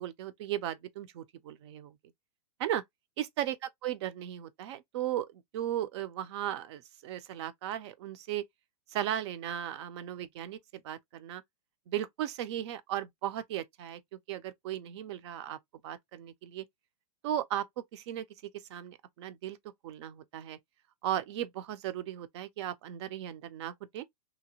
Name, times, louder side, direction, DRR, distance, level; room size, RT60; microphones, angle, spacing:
voice 1, 0.0-2.0 2.6-2.8 3.2-8.4 8.9-10.6 10.8-11.4 11.9-14.0 14.3-15.6 15.8-16.6 17.2-17.7 17.9-19.6 19.8-20.6 21.0-24.0, right 11 dB, 45° right, 0.4 m, -36 dB
2.9 x 2.1 x 2.7 m
hypercardioid pair, 150°, 20 cm